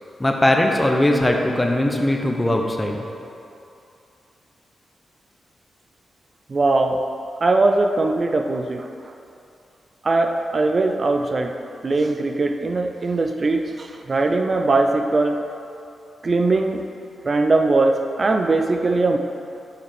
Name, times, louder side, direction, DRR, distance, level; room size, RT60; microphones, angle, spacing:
voice 1, 0.2-3.0, left 1 dB, 20° left, 2 dB, 0.9 m, -20 dB
voice 2, 6.5-7.0 7.4-9.1 10.0-11.6 11.8-15.4 16.2-16.8 17.2-19.2, right 3 dB, 50° right, 5 dB, 0.5 m, -20 dB
8.8 x 5.6 x 3.4 m, 2.6 s
supercardioid pair, 45°, 0 cm